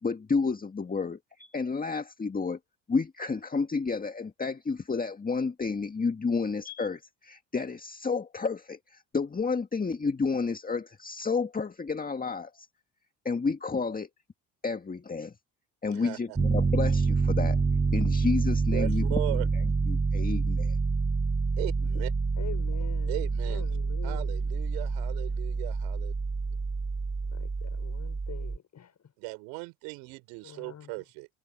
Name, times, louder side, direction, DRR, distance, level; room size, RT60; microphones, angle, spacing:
voice 1, 0.0-2.6 2.9-12.7 13.3-14.1 14.6-15.3 15.8-17.6 17.9-20.8, left 4 dB, 20° left, 1.9 m, -31 dB
voice 2, 15.9-16.4 18.7-19.5 21.6-22.1 23.1-23.7 24.0-26.1 29.2-31.3, right 31 dB, 80° right, 6.0 m, -38 dB
Piano, 16.4-28.6, right 4 dB, 20° right, 1.4 m, -27 dB
voice 3, 22.4-23.2 23.4-24.3 27.3-28.9 30.4-30.9, left 8 dB, 45° left, 6.1 m, -45 dB
supercardioid pair, 70°, 38 cm